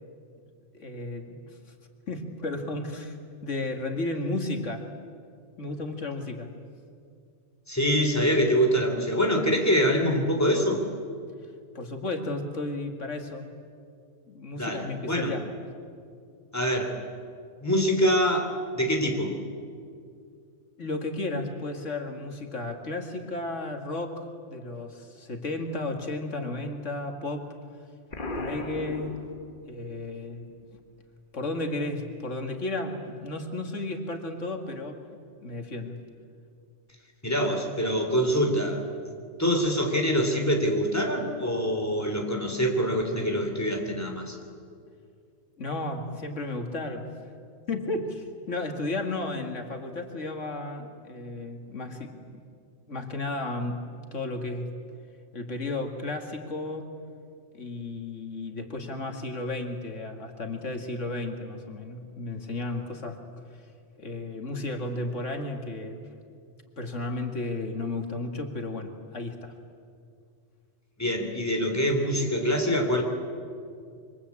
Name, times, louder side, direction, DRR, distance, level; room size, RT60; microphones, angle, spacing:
voice 1, 0.7-1.6 2.1-3.2 3.4-4.9 5.6-6.5 11.7-13.4 14.3-15.4 20.8-27.5 28.4-29.2 29.7-30.8 31.3-35.0 35.4-36.0 45.6-47.1 47.7-52.4 52.9-53.8 54.1-54.7 55.3-56.9 57.5-63.2 64.0-66.0 66.8-69.5, left 2 dB, 90° left, 4 dB, 2.5 m, -33 dB
voice 2, 7.7-10.8 14.5-15.3 16.5-17.0 17.6-19.4 37.2-38.8 39.4-44.4 71.0-73.0, equal, 15° left, 3 dB, 3.4 m, -25 dB
Explosion, 28.1-29.9, left 2 dB, 45° left, 1.6 m, -36 dB
27.0 x 25.0 x 8.5 m, 2.3 s
omnidirectional pair, 1.2 m